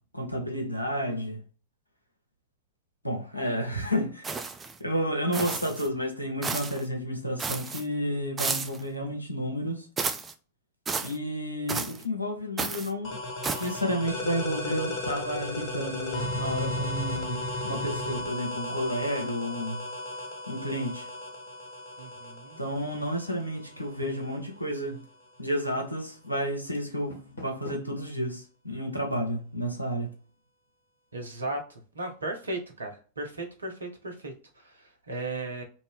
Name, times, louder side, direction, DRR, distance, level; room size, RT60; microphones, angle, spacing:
voice 1, 0.1-1.4 3.0-4.3 4.8-9.9 11.0-13.2 13.6-19.9 20.5-21.1 22.6-25.0 25.4-30.1, equal, 90° left, 0.6 m, -31 dB
sound 1, 4.2-4.8 5.3-5.9 6.4-6.8 7.4-7.8 8.4-8.8 10.0-10.3 10.9-11.2 11.7-12.0 12.6-12.9 13.4-13.8, right 4 dB, 15° right, 0.3 m, -32 dB
sound 2, 13.0-24.4, left 1 dB, 40° left, 1.0 m, -35 dB
voice 2, 22.0-22.6 31.1-35.6, right 2 dB, 75° right, 0.8 m, -36 dB
Door, 26.8-28.0, left 1 dB, 70° left, 1.1 m, -45 dB
2.7 x 2.6 x 3.3 m
figure-of-eight pair, 90°, 0 cm